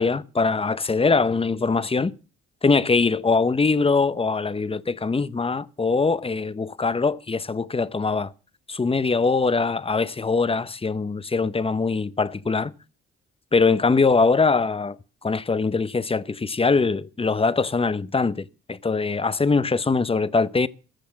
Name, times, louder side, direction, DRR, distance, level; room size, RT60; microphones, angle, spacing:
voice 1, 0.0-2.1 2.6-8.3 8.7-12.7 13.5-15.0 15.2-20.7, left 4 dB, 20° left, 0.7 m, -22 dB
14.5 x 6.4 x 7.4 m
supercardioid pair, 65°, 29 cm